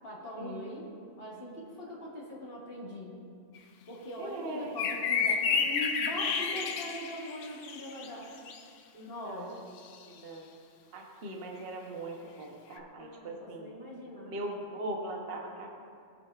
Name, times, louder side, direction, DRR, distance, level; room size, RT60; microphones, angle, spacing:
voice 1, 0.0-0.9 1.2-3.2 3.9-8.3 9.1-9.5 13.0-14.3, equal, 45° left, -4 dB, 2.0 m, -41 dB
sound 1, 3.5-3.6 4.8-8.6 9.8-9.9 12.8-12.9, left 6 dB, 70° left, 0.9 m, -31 dB
voice 2, 4.2-4.8 8.9-9.5 10.0-10.4 10.9-13.7 14.3-15.7, right 1 dB, 50° right, 0 dB, 1.1 m, -40 dB
18.0 x 6.5 x 2.4 m, 2.4 s
omnidirectional pair, 1.3 m